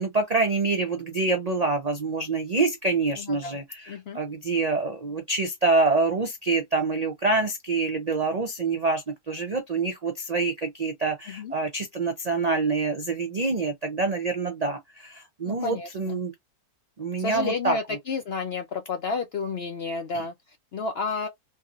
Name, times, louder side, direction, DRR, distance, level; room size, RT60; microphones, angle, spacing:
voice 1, 0.0-16.3 17.0-17.8, right 3 dB, 80° right, 0.3 m, -26 dB
voice 2, 3.1-3.6 3.9-4.2 11.2-11.5 15.5-16.2 17.2-21.3, left 4 dB, 65° left, 0.6 m, -31 dB
3.3 x 2.7 x 2.3 m
omnidirectional pair, 1.7 m